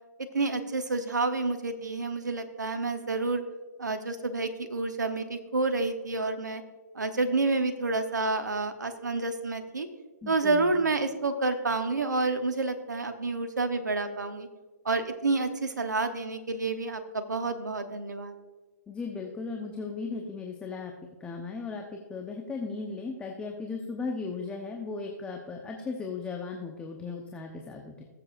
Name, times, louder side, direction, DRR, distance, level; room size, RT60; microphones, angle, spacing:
voice 1, 0.3-3.4 3.8-6.6 6.9-9.9 10.3-14.5 14.8-18.3, right 3 dB, 90° right, 8 dB, 1.1 m, -29 dB
voice 2, 10.2-10.8 18.9-20.9 21.2-28.0, left 4 dB, 10° left, 1 dB, 1.0 m, -36 dB
20.5 x 7.7 x 2.6 m, 1.3 s
hypercardioid pair, 130°, 9 cm